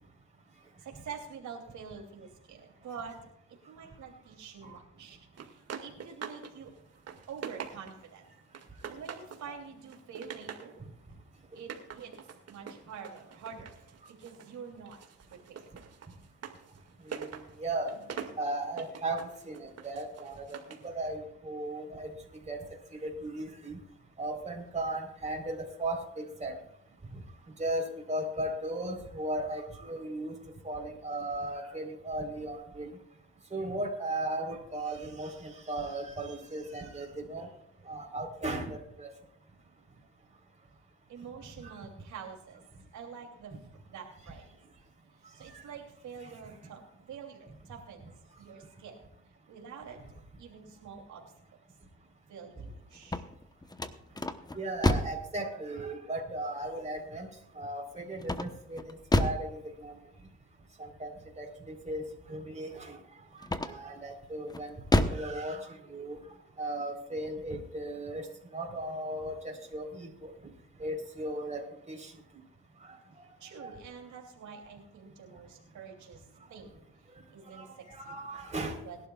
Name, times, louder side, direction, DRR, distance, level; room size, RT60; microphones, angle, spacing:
voice 1, 0.8-3.2 3.7-5.2 5.8-6.7 7.3-8.2 8.9-10.8 11.5-12.1 12.5-13.7 14.2-15.0 15.3-15.6 41.1-42.6 42.9-43.6 43.9-44.6 45.4-46.8 47.1-49.0 49.5-50.0 50.4-51.2 52.3-53.2 73.4-76.2 76.5-76.8 77.3-78.2 78.8-79.0, right 6 dB, 75° right, 1 dB, 3.0 m, -46 dB
sound 1, 5.4-6.5 6.9-8.1 8.5-9.5 9.8-10.7 11.5-14.5 14.9-20.9, right 7 dB, 55° right, 2.2 m, -44 dB
voice 2, 17.1-17.9 18.4-20.6 20.8-22.1 22.5-22.6 23.0-23.8 24.2-26.5 27.6-30.4 30.6-32.9 33.5-37.5 37.9-39.1 41.6-41.7 54.5-57.3 57.6-59.9 60.8-61.1 61.4-63.0 63.6-64.7 65.1-66.2 66.6-70.3 70.8-72.1 73.6-73.7 77.6-78.8, right 1 dB, 25° right, 1 dB, 4.0 m, -36 dB
sound 2, 52.9-55.3 58.2-59.5 63.4-64.0 64.5-65.3, left 2 dB, 15° left, 1.0 m, -29 dB
21.5 x 11.5 x 2.4 m, 0.81 s
cardioid pair, 90°, 30 cm